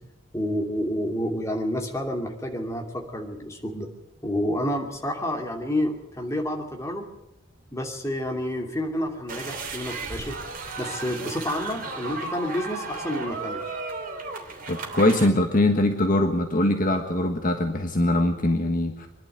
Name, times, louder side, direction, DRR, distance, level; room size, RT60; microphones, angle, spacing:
voice 1, 0.3-3.9 4.2-7.1 7.7-10.4 10.8-13.7, left 1 dB, 15° left, 2 dB, 2.7 m, -29 dB
sound 1, 9.3-15.3, right 3 dB, 45° right, 3.0 m, -34 dB
voice 2, 14.7-19.1, left 1 dB, 45° left, 4 dB, 1.5 m, -22 dB
25.0 x 11.5 x 9.2 m, 0.94 s
head